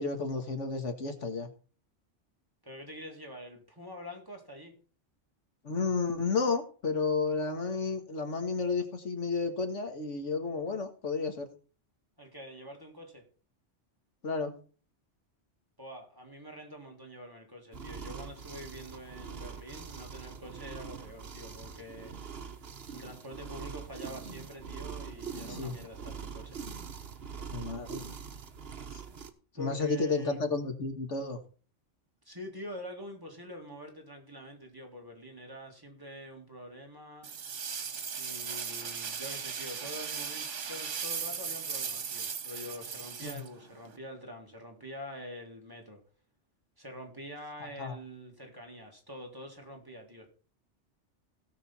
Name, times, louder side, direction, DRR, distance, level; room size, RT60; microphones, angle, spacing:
voice 1, 0.0-1.5 5.6-11.5 14.2-14.5 25.5-25.8 27.5-28.0 28.9-29.0 29.6-31.4 43.2-43.4 47.8-48.0, left 4 dB, 85° left, 6 dB, 1.9 m, -32 dB
voice 2, 2.6-4.8 12.2-13.3 15.8-22.1 22.9-26.6 29.5-30.4 32.2-37.3 38.2-46.0 46.8-50.3, equal, 20° right, 1 dB, 2.4 m, -45 dB
sound 1, 17.7-29.3, right 6 dB, 60° right, 1.3 m, -43 dB
sound 2, 37.2-44.0, right 6 dB, 80° right, 1.5 m, -37 dB
17.0 x 6.5 x 4.2 m, 0.38 s
omnidirectional pair, 1.2 m